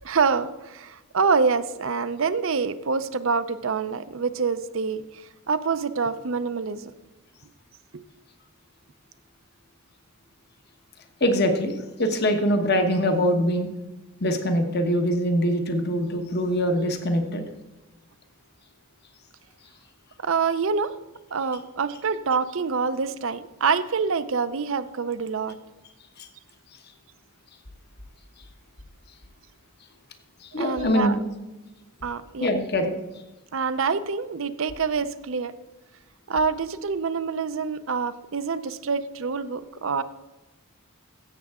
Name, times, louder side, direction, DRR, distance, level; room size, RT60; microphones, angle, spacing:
voice 1, 0.0-6.9 7.9-8.0 20.2-20.9 21.3-25.6 30.6-31.2 32.0-32.5 33.5-35.5 36.3-40.0, right 5 dB, 65° right, 13 dB, 0.6 m, -26 dB
voice 2, 11.2-13.7 14.2-17.4 26.2-26.3 30.4-31.1 32.4-33.0, equal, 50° left, 6 dB, 1.2 m, -23 dB
15.5 x 7.5 x 3.6 m, 1.1 s
head